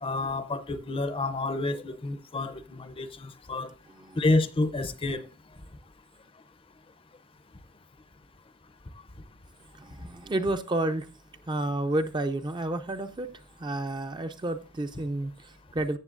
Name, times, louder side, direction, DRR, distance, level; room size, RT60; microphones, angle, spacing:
voice 1, 0.0-3.7 4.2-5.2, left 2 dB, 25° left, 0.6 m, -29 dB
voice 2, 3.9-4.2 9.8-11.1 11.5-13.3 13.6-16.0, right 1 dB, 20° right, 0.5 m, -30 dB
14.5 x 7.3 x 2.5 m
head